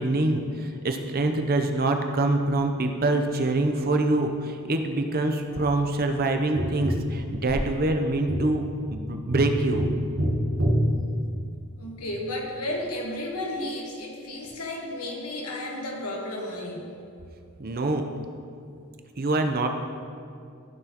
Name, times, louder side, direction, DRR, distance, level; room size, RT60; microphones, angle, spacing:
voice 1, 0.0-8.6 8.9-9.9 17.6-18.0 19.2-19.7, right 2 dB, 40° right, 5 dB, 0.7 m, -25 dB
Tap, 6.6-11.8 14.4-14.5, equal, 65° right, 1.4 m, -28 dB
voice 2, 11.8-16.8, left 1 dB, 85° left, 0 dB, 1.4 m, -33 dB
14.5 x 6.0 x 3.0 m, 2.4 s
head